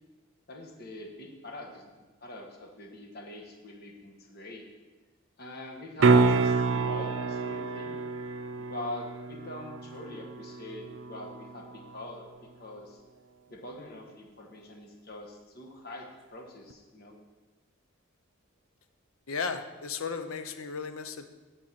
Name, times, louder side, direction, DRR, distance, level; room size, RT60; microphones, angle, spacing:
voice 1, 0.5-4.6 5.4-8.0 8.6-12.2 12.6-13.0 13.5-17.2, left 1 dB, 45° left, 1 dB, 1.3 m, -43 dB
sound 1, 6.0-12.0 16.7-16.8, right 4 dB, 60° right, 0.5 m, -28 dB
voice 2, 19.3-21.3, left 5 dB, 80° left, 9 dB, 0.7 m, -35 dB
8.8 x 4.5 x 7.2 m, 1.3 s
head